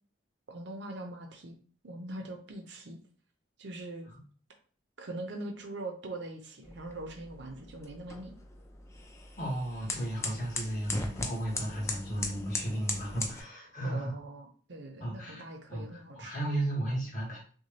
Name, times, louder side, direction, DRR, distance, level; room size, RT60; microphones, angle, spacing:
voice 1, 0.5-1.6 1.8-3.0 3.6-4.1 5.0-8.3 13.8-16.3, right 2 dB, 65° right, 3 dB, 0.7 m, -42 dB
sound 1, 6.6-13.4, left 2 dB, 15° left, 0.4 m, -39 dB
voice 2, 9.4-14.1 15.0-15.4 15.7-17.4, right 1 dB, 40° left, -4 dB, 1.5 m, -34 dB
6.2 x 2.3 x 2.8 m, 0.41 s
head